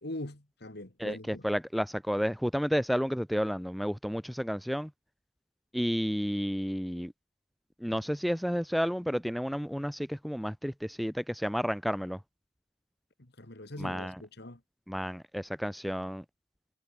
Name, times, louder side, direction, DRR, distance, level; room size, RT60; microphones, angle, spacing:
voice 1, 0.0-1.5 13.2-14.6, left 1 dB, 55° left, 2.3 m, -42 dB
voice 2, 1.0-4.9 5.7-7.1 7.8-12.2 13.8-14.2 14.9-16.2, equal, ahead, 0.6 m, -31 dB
head